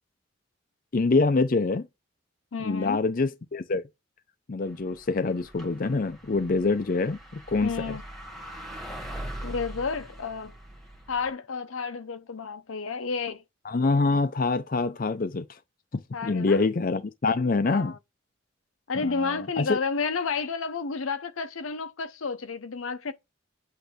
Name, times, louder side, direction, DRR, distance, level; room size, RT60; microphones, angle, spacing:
voice 1, 0.9-1.9 2.6-3.8 4.5-7.7 13.7-15.5 16.2-17.9 19.0-19.8, left 3 dB, 45° left, 0.5 m, -25 dB
voice 2, 2.5-3.0 7.6-8.0 9.4-10.5 11.1-13.4 16.1-16.7 17.6-18.0 18.9-23.1, left 4 dB, 90° left, 0.7 m, -31 dB
sound 1, 4.6-11.3, right 1 dB, ahead, 1.3 m, -42 dB
8.1 x 2.7 x 5.0 m
head